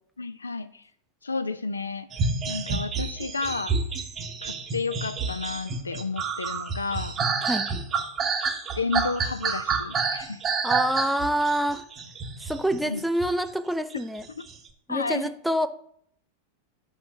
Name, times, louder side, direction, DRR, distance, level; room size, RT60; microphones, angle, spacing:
voice 1, 0.2-0.8 1.2-2.1 2.5-3.7 4.4-7.2 8.8-10.4 12.8-13.0 14.4-14.5 14.9-15.3, left 4 dB, 75° left, 12 dB, 0.4 m, -31 dB
sound 1, 2.1-13.4 14.2-14.5, right 5 dB, 25° right, 0.8 m, -29 dB
voice 2, 10.6-11.8 12.4-14.2 14.9-15.7, right 1 dB, ahead, 12 dB, 0.4 m, -26 dB
5.6 x 4.3 x 5.7 m, 0.67 s
figure-of-eight pair, 90°, 0 cm